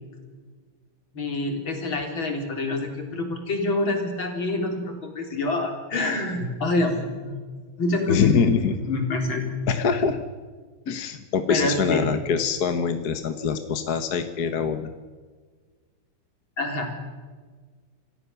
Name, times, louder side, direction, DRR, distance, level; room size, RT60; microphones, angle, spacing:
voice 1, 1.1-7.4 7.8-8.4 8.9-9.5 11.5-12.1 16.6-16.9, left 2 dB, 70° left, 3 dB, 4.4 m, -26 dB
voice 2, 8.1-8.7 9.7-10.2 10.9-14.9, left 6 dB, 55° left, 8 dB, 1.6 m, -24 dB
27.5 x 16.0 x 6.9 m, 1.5 s
omnidirectional pair, 2.2 m